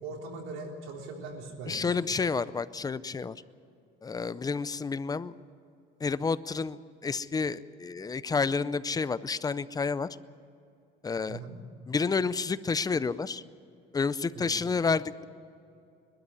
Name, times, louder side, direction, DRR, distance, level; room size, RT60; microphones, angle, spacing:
voice 1, 0.0-2.1 11.3-11.5 14.3-14.5, right 3 dB, 80° right, 1 dB, 3.8 m, -40 dB
voice 2, 1.7-3.4 4.0-5.3 6.0-10.1 11.0-11.4 11.9-13.4 13.9-15.2, left 4 dB, 20° left, 16 dB, 0.5 m, -30 dB
21.5 x 12.5 x 9.8 m, 2.6 s
cardioid pair, 125°, 21 cm